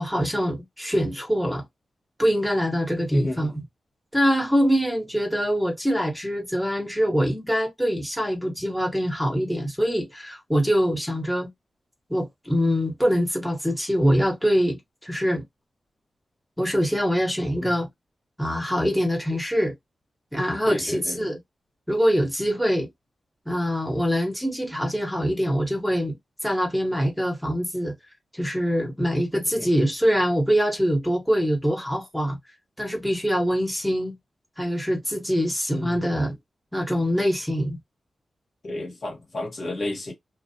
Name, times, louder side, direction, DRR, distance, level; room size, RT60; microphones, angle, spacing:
voice 1, 0.0-1.6 2.2-3.6 4.1-11.5 12.1-15.4 16.6-17.9 18.4-19.8 20.3-21.4 21.9-22.9 23.5-26.2 26.4-27.9 28.3-32.4 32.8-34.1 34.6-36.3 36.7-37.8, equal, ahead, 1.2 m, -24 dB
voice 2, 3.1-3.5 17.6-17.7 20.6-21.2 29.6-29.7 35.7-36.0 38.6-40.1, left 2 dB, 60° left, 1.4 m, -31 dB
2.4 x 2.3 x 2.8 m
cardioid pair, 40°, 0 cm